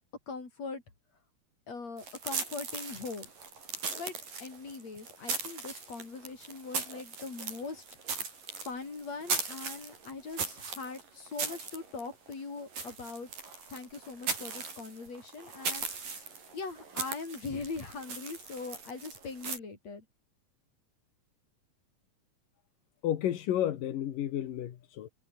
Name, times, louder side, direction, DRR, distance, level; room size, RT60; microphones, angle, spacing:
voice 1, 0.3-0.8 1.7-3.3 4.0-7.8 8.2-8.3 8.7-13.3 13.7-15.9 16.5-20.0, left 4 dB, 50° left, 6.1 m, -41 dB
sound 1, 2.0-19.6, right 5 dB, 90° right, 8.1 m, -39 dB
voice 2, 23.0-25.1, left 11 dB, 85° left, 3.3 m, -31 dB
omnidirectional pair, 3.8 m